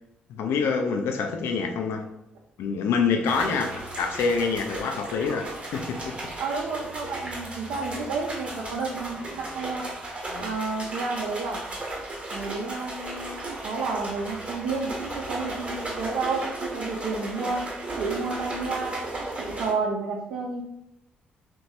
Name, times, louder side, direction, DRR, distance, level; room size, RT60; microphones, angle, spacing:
voice 1, 0.3-2.1 2.6-3.7 4.0-6.1 10.3-10.5, left 5 dB, 55° left, 5 dB, 0.4 m, -26 dB
sound 1, 3.3-19.7, right 2 dB, 25° right, 0.8 m, -35 dB
voice 2, 6.4-9.9 10.4-11.6 12.3-13.4 13.6-17.7 18.0-19.0 19.4-20.6, right 4 dB, 60° right, -2 dB, 0.4 m, -31 dB
2.9 x 2.2 x 2.7 m, 0.84 s
figure-of-eight pair, 45°, 5 cm